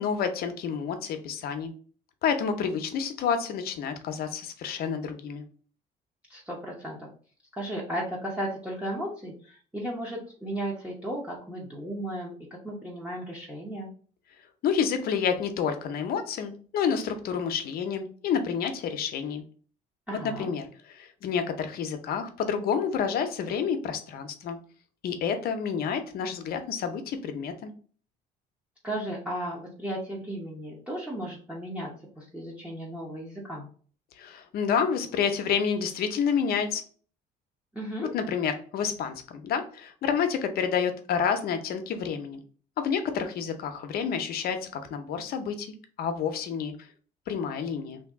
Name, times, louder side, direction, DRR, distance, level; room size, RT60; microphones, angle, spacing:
voice 1, 0.0-1.7 2.2-5.4 14.6-19.4 20.1-24.6 25.0-27.7 34.2-36.8 38.1-42.4 42.8-46.9 47.3-48.0, left 7 dB, 65° left, 8 dB, 0.6 m, -29 dB
voice 2, 6.3-7.1 7.6-12.3 12.6-13.9 20.1-20.5 28.8-31.9 32.2-33.7 37.7-38.1, right 1 dB, 10° right, -4 dB, 0.8 m, -35 dB
2.9 x 2.6 x 3.4 m, 0.43 s
cardioid pair, 110°, 17 cm